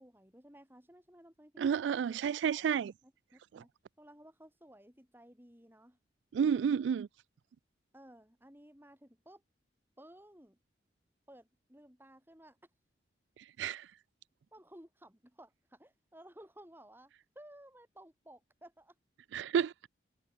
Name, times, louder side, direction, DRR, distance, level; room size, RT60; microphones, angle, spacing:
voice 1, 0.0-1.8 3.0-3.7 4.0-6.0 7.9-9.4 10.0-10.6 11.3-12.6 14.5-18.9, right 1 dB, 10° right, 7.9 m, -57 dB
voice 2, 1.6-2.9 3.5-3.6 6.3-7.1 13.4-13.9 19.3-19.7, right 7 dB, 85° right, 0.3 m, -31 dB
head